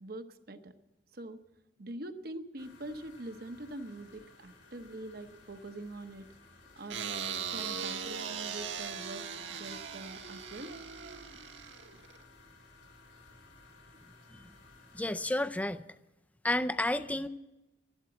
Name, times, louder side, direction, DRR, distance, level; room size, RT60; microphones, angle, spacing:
voice 1, 0.0-0.7 1.1-1.4 1.8-6.3 6.8-9.2 9.6-10.7, right 2 dB, 55° right, 8 dB, 1.0 m, -44 dB
sound 1, 2.6-15.3, left 3 dB, 80° left, 3.8 m, -58 dB
sound 2, 6.9-12.2, right 7 dB, 85° right, 1.4 m, -39 dB
voice 2, 14.9-15.8 16.4-17.3, left 1 dB, 10° left, 13 dB, 0.4 m, -31 dB
12.5 x 12.0 x 7.8 m, 1.0 s
head